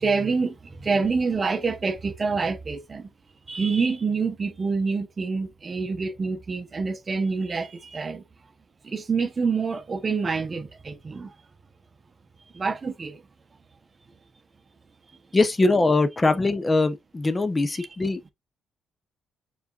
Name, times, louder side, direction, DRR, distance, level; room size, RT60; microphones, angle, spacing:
voice 1, 0.0-3.1 3.5-8.2 8.8-11.3 12.5-13.2, right 4 dB, 35° right, 0.7 m, -27 dB
voice 2, 15.3-18.2, left 2 dB, 25° left, 0.5 m, -22 dB
4.8 x 4.0 x 2.3 m
cardioid pair, 90°, 0 cm